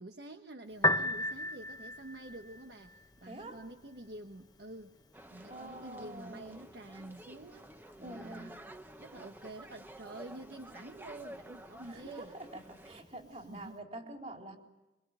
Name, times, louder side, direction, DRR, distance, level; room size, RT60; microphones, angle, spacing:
voice 1, 0.0-4.9 5.3-7.7 8.0-8.5 9.0-12.3 13.5-13.8, right 2 dB, 70° right, 4 dB, 1.4 m, -48 dB
Piano, 0.7-13.7, left 1 dB, 20° left, 1.0 m, -41 dB
voice 2, 3.3-3.6 5.5-6.6 8.0-8.5 10.6-10.7 11.8-14.6, right 1 dB, 40° right, 2 dB, 4.1 m, -46 dB
sound 1, 5.1-13.0, right 1 dB, 10° right, 1.1 m, -51 dB
25.5 x 24.5 x 9.3 m, 1.0 s
head